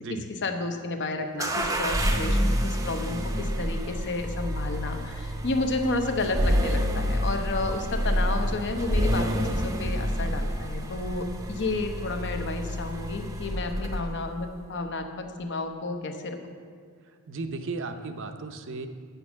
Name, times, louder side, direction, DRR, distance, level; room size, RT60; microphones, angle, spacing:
voice 1, 0.4-16.4, left 2 dB, 55° left, 6 dB, 0.9 m, -31 dB
sound 1, 1.4-14.2, equal, 15° right, 0.6 m, -28 dB
voice 2, 17.3-18.9, right 3 dB, 55° right, 8 dB, 0.7 m, -35 dB
9.1 x 6.8 x 6.2 m, 2.1 s
head